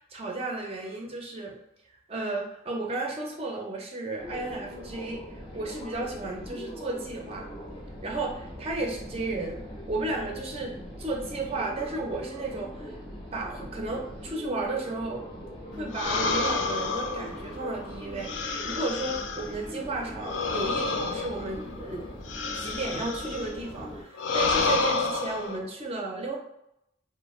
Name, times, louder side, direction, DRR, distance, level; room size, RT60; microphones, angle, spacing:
voice 1, 0.0-1.5 2.1-7.5 8.0-9.6 9.9-10.7 11.0-13.0 13.3-15.2 15.8-22.1 22.6-26.3, right 2 dB, 30° right, 0 dB, 0.4 m, -33 dB
sound 1, 4.2-24.0, equal, 25° left, 0.6 m, -41 dB
sound 2, 15.9-19.6 20.2-23.5 24.1-25.6, left 3 dB, 75° left, 0.3 m, -29 dB
2.4 x 2.2 x 3.0 m, 0.81 s
head